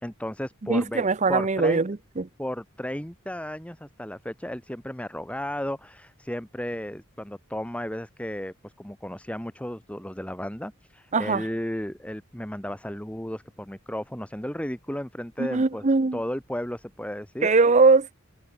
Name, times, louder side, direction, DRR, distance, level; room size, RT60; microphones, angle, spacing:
voice 1, 0.0-1.8 2.4-15.9 16.1-17.5, left 1 dB, 5° left, 1.5 m, -34 dB
voice 2, 0.7-2.3 11.1-11.4 15.4-16.2 17.4-18.1, right 3 dB, 35° right, 0.6 m, -21 dB
head